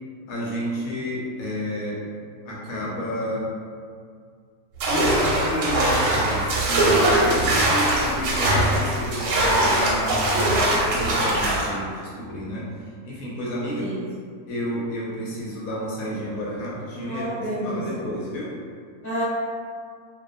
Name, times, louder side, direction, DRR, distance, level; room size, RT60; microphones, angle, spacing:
voice 1, 0.3-2.0 2.5-3.5 4.9-12.7 13.0-13.9 14.5-17.3 17.6-18.5, equal, 70° left, -5 dB, 1.0 m, -30 dB
sound 1, 4.8-11.7, right 1 dB, 70° right, 0.9 m, -21 dB
voice 2, 13.7-14.1 17.1-18.0 19.0-19.2, right 1 dB, 10° left, -13 dB, 1.0 m, -30 dB
2.4 x 2.2 x 2.5 m, 2.1 s
omnidirectional pair, 1.6 m